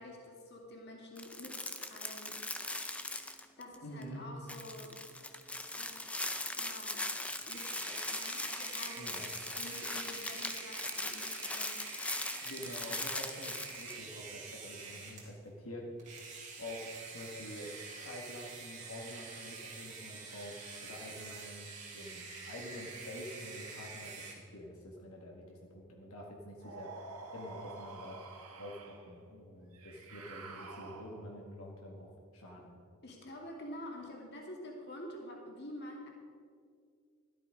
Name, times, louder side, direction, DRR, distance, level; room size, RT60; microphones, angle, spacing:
voice 1, 0.0-2.7 3.6-5.0 5.8-6.1 6.5-7.1 7.5-11.8 33.0-36.1, left 1 dB, 45° left, 0 dB, 2.2 m, -48 dB
sound 1, 1.2-3.7 4.0-4.1 4.5-14.0, left 2 dB, 5° left, 0.5 m, -40 dB
voice 2, 3.8-4.3 9.0-9.3 12.4-16.3 16.6-17.8 18.0-28.2 28.5-32.8, left 1 dB, 75° left, -1 dB, 1.8 m, -47 dB
sound 2, 7.5-15.3 16.0-24.3, right 4 dB, 30° right, 2.4 m, -47 dB
sound 3, 26.6-29.1 29.7-31.4, right 3 dB, 85° right, 1.8 m, -49 dB
13.5 x 12.0 x 5.1 m, 2.3 s
head